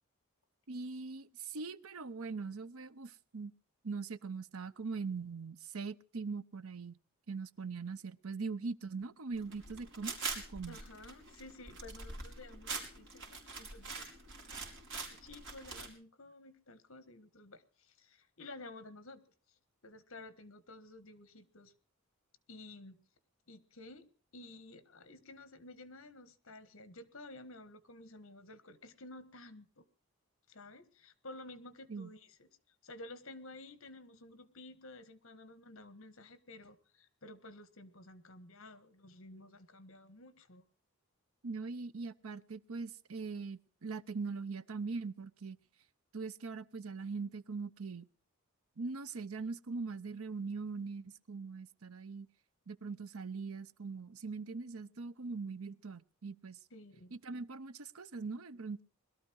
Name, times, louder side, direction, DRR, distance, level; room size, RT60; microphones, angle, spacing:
voice 1, 0.7-3.5 3.8-7.0 7.3-10.8 31.9-32.1 41.4-45.6 46.1-48.1 48.8-52.3 52.7-56.6 57.1-58.8, right 4 dB, 75° right, 15 dB, 0.8 m, -41 dB
sound 1, 9.4-15.9, right 4 dB, 60° right, 4.7 m, -44 dB
voice 2, 10.7-14.5 14.9-19.2 19.8-21.7 22.5-23.0 23.5-24.0 24.3-29.8 30.5-32.5 32.8-40.6 56.7-57.2, left 2 dB, 65° left, 13 dB, 1.6 m, -53 dB
21.5 x 13.0 x 4.7 m, 0.41 s
head